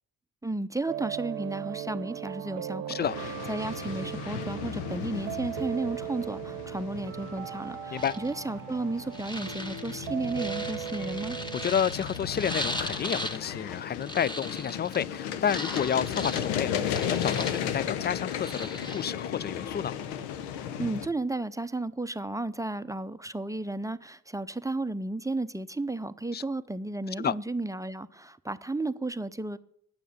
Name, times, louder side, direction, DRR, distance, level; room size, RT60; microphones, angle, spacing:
voice 1, 0.4-3.1 3.5-11.4 20.8-29.6, right 2 dB, 10° right, 0.7 m, -33 dB
sound 1, 0.9-11.7, right 10 dB, 85° right, 0.8 m, -38 dB
sound 2, 3.0-21.1, left 9 dB, 85° left, 0.7 m, -35 dB
sound 3, 8.0-8.3 9.1-13.4 13.7-15.0 15.4-17.8 18.2-19.1, equal, 10° left, 1.7 m, -38 dB
voice 2, 11.6-19.9 26.3-26.4 27.2-27.4, left 8 dB, 30° left, 0.4 m, -30 dB
9.2 x 6.9 x 8.7 m
hypercardioid pair, 40°, 39 cm